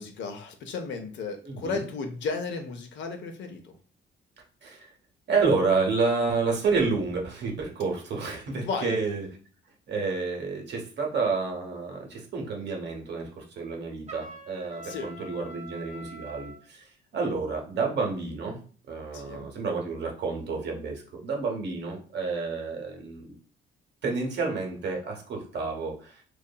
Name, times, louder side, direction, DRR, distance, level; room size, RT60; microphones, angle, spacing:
voice 1, 0.0-3.7 8.6-9.0 14.8-15.1 19.1-19.5, left 4 dB, 65° left, 5 dB, 0.6 m, -34 dB
voice 2, 1.4-1.8 4.6-4.9 5.3-9.3 9.9-16.9 17.1-18.6 18.9-23.3 24.0-26.2, right 4 dB, 60° right, 1 dB, 0.9 m, -29 dB
Trumpet, 14.1-16.6, right 1 dB, 35° right, 0.6 m, -44 dB
2.7 x 2.4 x 2.2 m, 0.42 s
cardioid pair, 90°, 20 cm